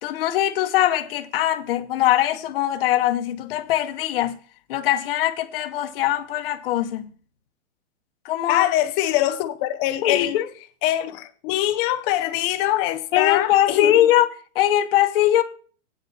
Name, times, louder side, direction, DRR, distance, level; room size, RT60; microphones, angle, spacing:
voice 1, 0.0-4.4 4.7-7.1 8.2-8.6 10.0-10.5 13.1-14.3 14.5-15.4, left 12 dB, 50° left, 1.0 m, -21 dB
voice 2, 8.5-10.4 10.8-14.1, left 14 dB, 20° left, 0.5 m, -23 dB
8.7 x 6.8 x 5.8 m
hypercardioid pair, 160°, 37 cm